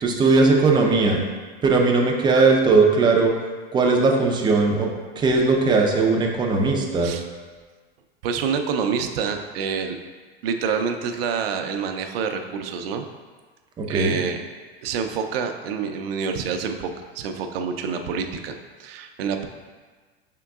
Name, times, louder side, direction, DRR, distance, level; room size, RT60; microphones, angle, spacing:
voice 1, 0.0-1.2 1.6-3.3 3.7-4.9 5.2-7.1 13.8-14.2, right 3 dB, 15° right, 1 dB, 0.4 m, -18 dB
voice 2, 8.2-10.0 10.4-13.1 13.9-14.4 14.8-18.5 18.8-19.4, right 6 dB, 70° right, 6 dB, 0.5 m, -27 dB
5.1 x 3.7 x 2.3 m, 1.4 s
hypercardioid pair, 120°, 30 cm